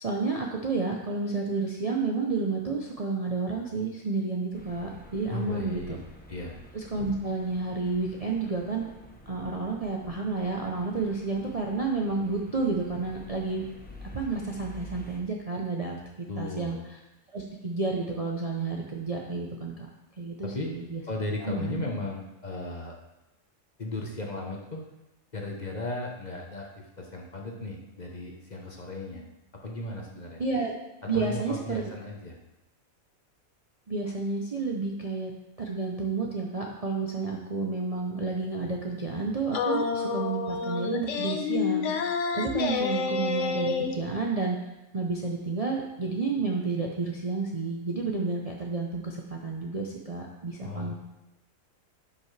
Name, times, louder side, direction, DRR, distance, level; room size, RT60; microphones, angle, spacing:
voice 1, 0.0-6.0 6.7-8.9 9.3-13.6 14.1-16.8 17.3-19.9 20.2-21.0 21.4-21.8 30.4-30.7 31.0-31.8 33.9-35.3 35.6-41.9 42.3-44.6 44.9-50.9, right 3 dB, 35° right, -1 dB, 0.6 m, -30 dB
sound 1, 4.5-15.2, equal, 10° left, 0.5 m, -49 dB
voice 2, 5.3-6.0 6.3-6.6 16.3-16.8 20.4-20.7 21.1-23.0 23.8-24.8 25.3-29.3 29.6-30.4 31.1-32.4 50.6-50.9, left 2 dB, 35° left, 0 dB, 1.0 m, -36 dB
sound 2, 39.5-44.0, left 5 dB, 65° left, 1.0 m, -29 dB
10.5 x 5.7 x 3.3 m, 0.96 s
omnidirectional pair, 1.5 m